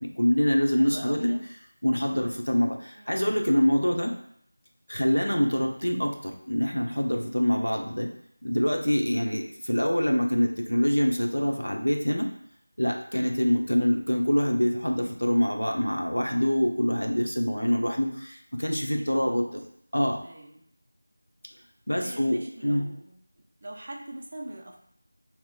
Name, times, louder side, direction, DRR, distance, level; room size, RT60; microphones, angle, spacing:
voice 1, 0.0-1.3 1.8-4.1 4.9-8.1 8.4-12.3 12.8-19.6 19.9-20.2 21.9-22.9, equal, 75° left, 2 dB, 0.7 m, -25 dB
voice 2, 0.8-1.4 2.9-3.2 13.2-13.4 18.9-19.4 20.2-20.6 22.0-23.2 23.6-24.8, right 1 dB, 35° right, 0 dB, 0.5 m, -42 dB
2.9 x 2.4 x 3.4 m, 0.67 s
figure-of-eight pair, 170°, 0 cm